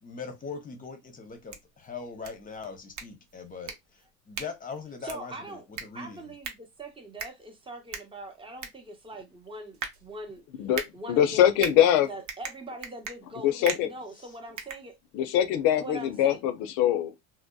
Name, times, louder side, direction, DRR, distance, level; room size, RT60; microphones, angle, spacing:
voice 1, 0.0-6.3 14.2-14.4, left 5 dB, 20° left, 0.7 m, -41 dB
sound 1, 1.3-15.4, right 6 dB, 45° right, 0.7 m, -41 dB
voice 2, 5.0-5.7 5.9-10.4 10.9-15.0 15.8-16.4, right 2 dB, 15° right, 0.6 m, -42 dB
voice 3, 11.1-12.1 13.4-13.9 15.1-17.2, left 11 dB, 60° left, 0.6 m, -23 dB
2.7 x 2.0 x 2.2 m
hypercardioid pair, 95°, 41 cm